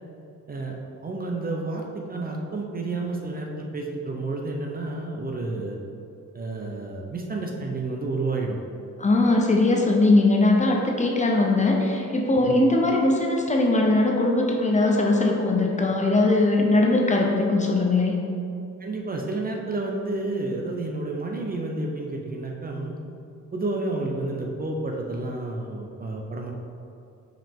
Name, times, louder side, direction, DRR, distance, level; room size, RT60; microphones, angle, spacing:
voice 1, 1.0-5.8 6.3-8.6 12.4-12.6 18.8-23.0 23.5-26.5, right 2 dB, 30° right, 1 dB, 0.6 m, -30 dB
voice 2, 9.0-18.1, left 2 dB, 25° left, 0 dB, 0.6 m, -20 dB
5.7 x 4.9 x 3.6 m, 2.6 s
wide cardioid pair, 145°, 30 cm